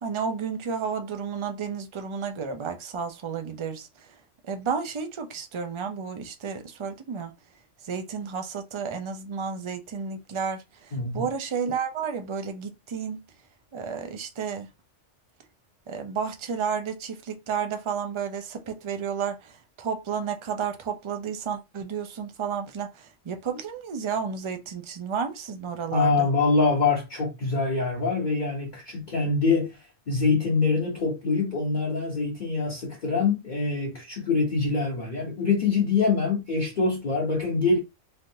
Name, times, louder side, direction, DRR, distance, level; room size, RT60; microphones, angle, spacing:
voice 1, 0.0-3.9 4.5-7.3 7.8-13.2 13.7-14.7 15.9-26.3, right 6 dB, 45° right, 0.4 m, -32 dB
voice 2, 10.9-11.2 25.9-37.8, left 4 dB, 45° left, 0.8 m, -24 dB
3.3 x 2.5 x 2.7 m
omnidirectional pair, 1.3 m